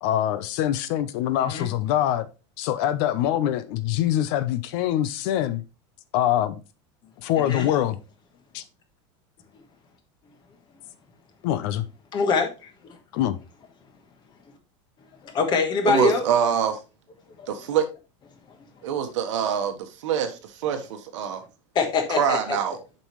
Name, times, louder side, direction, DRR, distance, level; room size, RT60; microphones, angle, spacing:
voice 1, 0.0-2.3 2.6-5.6 6.1-6.6 7.2-8.0 8.5-8.6 11.4-11.8 13.1-13.4, left 12 dB, 55° left, 0.7 m, -24 dB
voice 2, 12.1-12.5 15.2-16.2 21.7-22.6, left 5 dB, 30° left, 1.3 m, -23 dB
voice 3, 15.9-16.8 17.5-17.8 18.8-21.4 22.1-22.8, right 8 dB, 85° right, 1.3 m, -25 dB
7.0 x 5.4 x 3.1 m
supercardioid pair, 155°, 15 cm